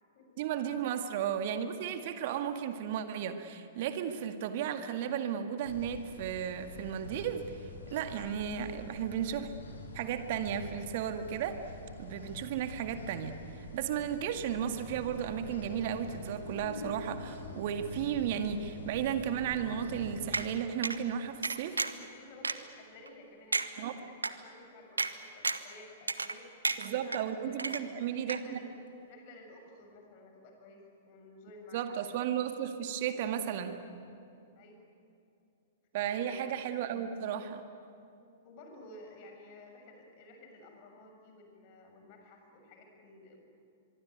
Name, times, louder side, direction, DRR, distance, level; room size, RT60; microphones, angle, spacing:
voice 1, 0.4-7.4 7.9-9.5 9.9-11.6 12.0-22.0 23.8-24.0 26.8-28.6 31.7-33.8 35.9-37.6, right 9 dB, 50° right, 8 dB, 2.0 m, -34 dB
sound 1, 5.7-20.3, left 2 dB, 70° left, 4.3 m, -46 dB
sound 2, 20.3-20.5 20.8-21.0 21.4-22.0 22.4-22.5 23.1-23.2 23.5-23.7 24.2-24.3 25.0-25.1 25.4-25.7 26.1-26.4 26.6-27.2 27.6-28.0 28.3-28.4, right 3 dB, 80° right, 1.2 m, -31 dB
voice 2, 21.7-28.0 28.3-28.8 29.1-32.1 34.6-34.8 36.1-36.6 38.4-43.4, left 2 dB, 45° left, 3 dB, 6.7 m, -54 dB
24.5 x 24.0 x 9.5 m, 2.6 s
figure-of-eight pair, 105°, 0 cm